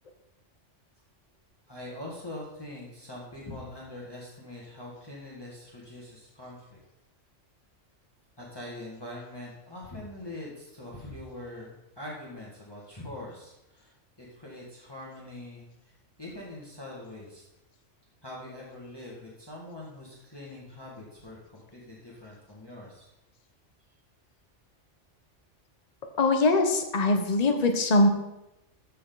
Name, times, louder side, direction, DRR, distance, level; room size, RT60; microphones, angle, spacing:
voice 1, 1.7-6.8 8.4-13.9 14.2-15.7 16.2-17.5 18.2-23.1, left 1 dB, 20° left, -5 dB, 2.0 m, -43 dB
voice 2, 26.2-28.1, left 2 dB, 35° left, 5 dB, 1.1 m, -22 dB
14.0 x 6.7 x 4.0 m, 0.92 s
omnidirectional pair, 1.3 m